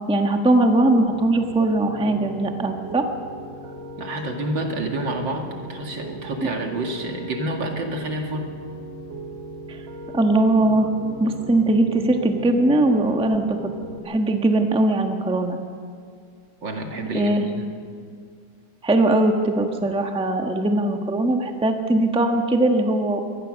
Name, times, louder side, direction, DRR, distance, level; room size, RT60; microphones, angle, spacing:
voice 1, 0.1-3.1 10.1-10.9 11.2-13.6 14.0-15.6 17.1-17.4 18.8-23.2, right 2 dB, 5° right, 4 dB, 1.0 m, -20 dB
Piano, 1.1-14.0, equal, 85° right, 2.7 m, -38 dB
voice 2, 4.0-8.5 16.6-17.7, right 1 dB, 70° right, 2 dB, 2.9 m, -28 dB
24.0 x 18.5 x 6.5 m, 2.2 s
omnidirectional pair, 2.1 m